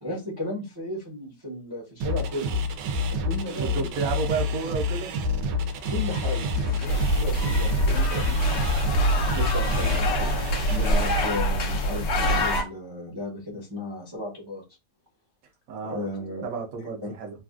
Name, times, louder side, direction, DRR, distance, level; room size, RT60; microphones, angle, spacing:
voice 1, 0.0-2.6 3.1-3.9 5.9-8.6 9.3-10.4 10.6-14.6 15.8-16.5 16.8-17.1, left 1 dB, 20° right, 0.7 m, -34 dB
sound 1, 2.0-11.2, left 2 dB, 85° right, 1.2 m, -28 dB
voice 2, 3.6-5.1 15.7-16.1 16.4-17.4, right 4 dB, 60° right, 1.0 m, -31 dB
sound 2, 6.1-12.6, left 4 dB, 55° left, 0.8 m, -31 dB
sound 3, 6.8-12.6, right 2 dB, 80° left, 1.3 m, -25 dB
3.3 x 2.3 x 2.4 m
omnidirectional pair, 1.8 m